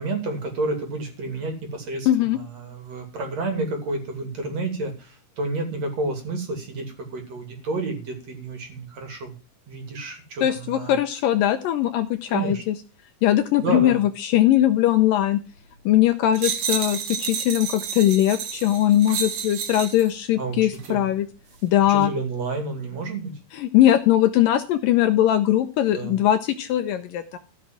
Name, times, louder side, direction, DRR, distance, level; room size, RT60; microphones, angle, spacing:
voice 1, 0.0-9.4 9.7-11.0 12.3-12.6 13.6-14.0 20.4-21.1 21.9-23.4 25.9-26.2, right 3 dB, 45° right, 5 dB, 3.7 m, -30 dB
voice 2, 2.1-2.4 10.4-12.8 13.2-15.4 15.9-21.3 21.6-22.1 23.5-27.4, left 12 dB, 75° left, 10 dB, 2.2 m, -20 dB
sound 1, 16.3-20.1 20.7-20.9, right 7 dB, 75° right, 3.7 m, -30 dB
15.0 x 6.1 x 7.4 m, 0.34 s
omnidirectional pair, 4.5 m